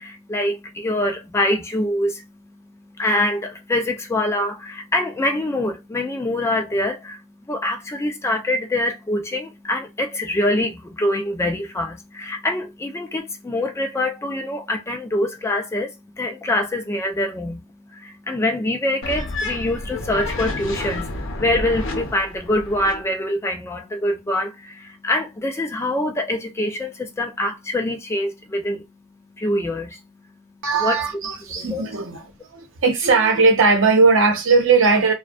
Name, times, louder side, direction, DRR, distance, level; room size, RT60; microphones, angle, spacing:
voice 1, 0.0-31.0 31.5-31.8, left 1 dB, 15° left, 0.3 m, -25 dB
sound 1, 19.0-23.0, left 2 dB, 65° left, 0.7 m, -30 dB
voice 2, 30.6-32.2 32.5-35.1, right 4 dB, 65° right, 0.7 m, -18 dB
2.5 x 2.1 x 2.4 m
head